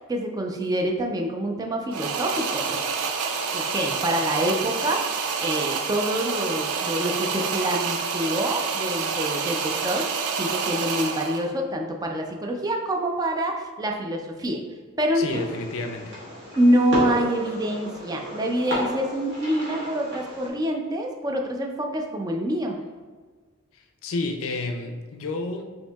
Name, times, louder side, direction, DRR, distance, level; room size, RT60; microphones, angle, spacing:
voice 1, 0.1-2.8 3.1-3.2 3.5-10.1 10.4-14.6 15.0-15.4 16.6-22.8, right 1 dB, 20° right, 2 dB, 0.3 m, -26 dB
sound 1, 1.9-11.5, right 5 dB, 90° right, 0.4 m, -28 dB
voice 2, 15.1-16.2 23.7-25.6, left 3 dB, 65° left, 5 dB, 0.4 m, -31 dB
Fireworks, 15.3-20.5, left 1 dB, 55° right, 1.3 m, -33 dB
5.2 x 2.8 x 2.3 m, 1.5 s
head